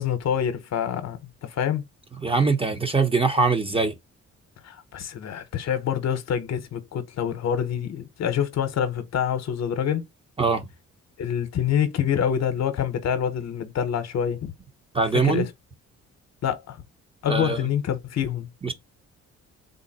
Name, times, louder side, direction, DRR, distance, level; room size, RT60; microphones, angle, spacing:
voice 1, 0.0-1.8 4.6-10.1 11.2-14.5 15.1-15.5 16.4-16.8 17.2-18.5, left 8 dB, 60° left, 0.8 m, -26 dB
voice 2, 2.2-3.9 10.4-10.7 14.9-15.4 17.3-17.6 18.6-18.7, right 4 dB, 20° right, 0.8 m, -22 dB
3.8 x 2.1 x 4.0 m
cardioid pair, 90°, 30 cm